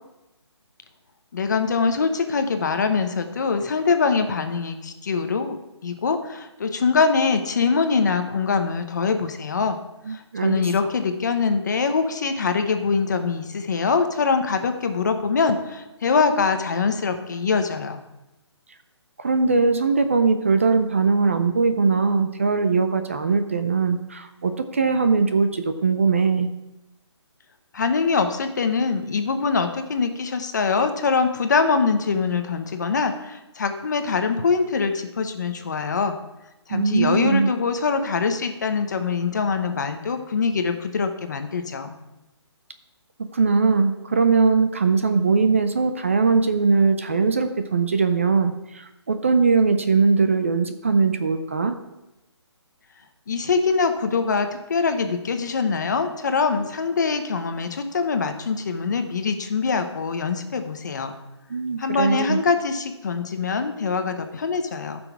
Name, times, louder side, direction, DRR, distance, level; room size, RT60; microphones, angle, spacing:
voice 1, 1.3-9.8 10.1-18.0 27.7-36.2 36.7-42.0 53.3-61.2 61.8-65.0, left 5 dB, 40° left, 7 dB, 0.9 m, -23 dB
voice 2, 10.1-10.6 19.2-26.5 36.7-37.5 43.3-51.8 61.5-62.4, right 4 dB, 30° right, 8 dB, 0.5 m, -20 dB
14.5 x 6.2 x 4.6 m, 0.95 s
hypercardioid pair, 175°, 15 cm